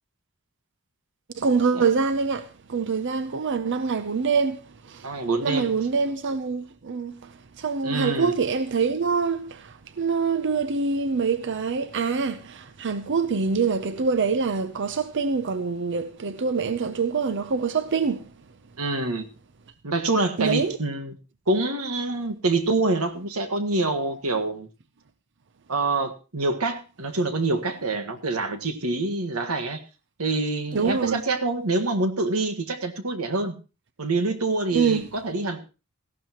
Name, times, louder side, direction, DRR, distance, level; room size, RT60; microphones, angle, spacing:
voice 1, 1.3-18.3 20.4-20.8 30.7-31.2 34.7-35.1, right 5 dB, 55° right, 0.7 m, -25 dB
voice 2, 5.0-5.7 7.8-8.3 18.8-19.2 19.8-21.1 21.5-24.7 25.7-29.8 30.2-33.5 34.0-35.6, right 2 dB, 85° right, 1.6 m, -26 dB
17.5 x 14.5 x 3.0 m
head